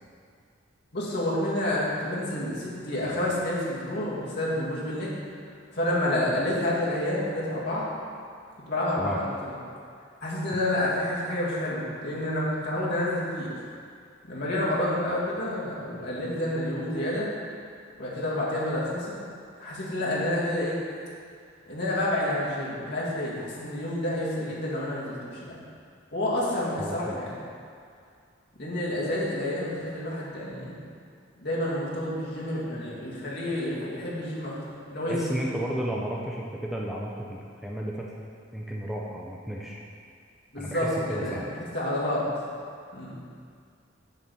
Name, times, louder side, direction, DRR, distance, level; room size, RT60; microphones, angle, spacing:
voice 1, 0.9-5.2 5.7-7.9 8.7-9.6 10.2-13.7 14.3-17.3 18.0-19.2 19.6-20.8 21.7-25.6 26.1-27.3 28.6-30.8 31.4-35.5 40.5-41.4 41.7-42.2 42.9-43.2, left 1 dB, 55° left, -7 dB, 2.0 m, -29 dB
voice 2, 26.8-27.2 35.1-38.1 38.5-39.8 40.6-41.5, equal, ahead, -3 dB, 0.5 m, -33 dB
7.3 x 4.1 x 6.8 m, 2.3 s
head